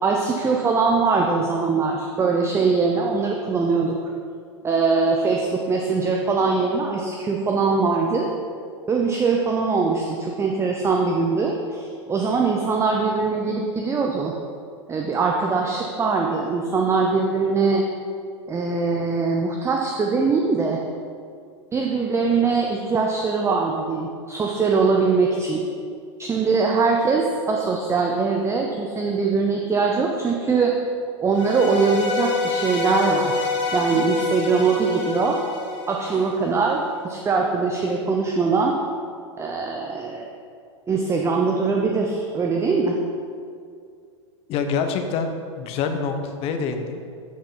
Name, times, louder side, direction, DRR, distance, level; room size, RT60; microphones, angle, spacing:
voice 1, 0.0-4.0 4.6-8.3 8.9-14.3 14.9-17.8 18.5-20.8 21.7-25.6 26.2-30.7 31.2-33.4 33.7-35.4 35.9-38.8 39.4-40.3 40.9-43.0, right 4 dB, 15° right, 1 dB, 0.6 m, -22 dB
sound 1, 31.3-36.6, left 3 dB, 80° left, 1.5 m, -27 dB
voice 2, 44.5-47.0, left 5 dB, 40° left, 6 dB, 0.8 m, -26 dB
9.1 x 4.9 x 3.9 m, 2.3 s
hypercardioid pair, 95°, 16 cm